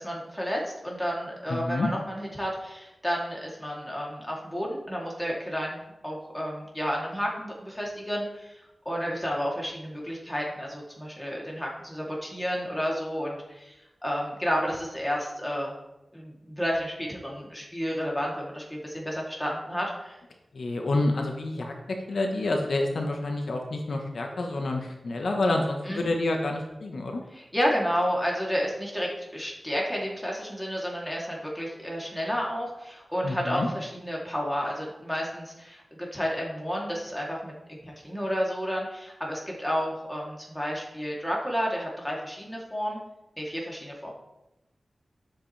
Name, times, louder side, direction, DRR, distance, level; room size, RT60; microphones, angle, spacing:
voice 1, 0.0-8.5 8.8-13.8 14.0-15.7 16.1-20.2 25.8-26.1 27.3-43.0 43.4-44.1, equal, 5° left, -3 dB, 3.0 m, -31 dB
voice 2, 1.5-1.9 20.5-27.2 33.2-33.7, left 2 dB, 80° left, 2 dB, 1.2 m, -28 dB
12.0 x 7.9 x 3.4 m, 0.95 s
cardioid pair, 55°, 0 cm